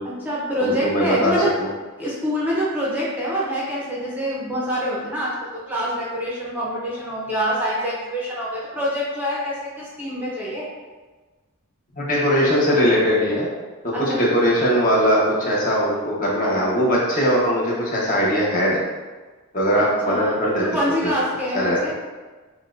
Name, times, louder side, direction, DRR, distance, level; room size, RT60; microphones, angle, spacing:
voice 1, 0.0-1.5 2.0-10.7 13.9-14.2 19.7-21.9, equal, 10° right, -7 dB, 0.7 m, -26 dB
voice 2, 0.6-1.4 12.0-13.5 13.8-18.8 19.5-20.6 21.0-21.1 21.5-21.8, equal, 40° left, -5 dB, 1.0 m, -20 dB
6.7 x 2.3 x 2.5 m, 1.3 s
head